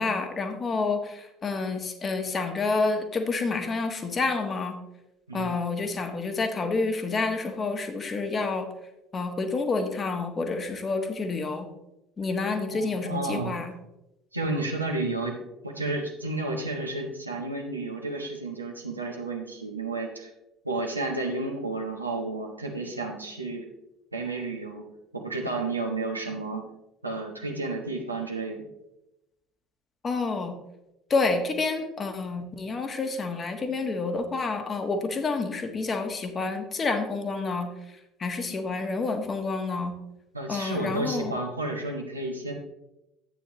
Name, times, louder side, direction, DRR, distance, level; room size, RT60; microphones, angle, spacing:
voice 1, 0.0-4.7 5.3-8.7 9.1-11.7 12.2-13.7 30.0-30.5 31.1-37.7 38.2-39.9 40.5-41.3, left 3 dB, 30° left, 6 dB, 1.4 m, -28 dB
voice 2, 12.7-13.6 14.3-15.4 15.6-20.3 20.6-23.7 24.1-24.9 25.1-26.6 27.0-28.6 40.3-42.5, right 2 dB, 85° right, 1 dB, 1.2 m, -31 dB
11.0 x 8.7 x 3.1 m, 0.90 s
figure-of-eight pair, 60°, 0 cm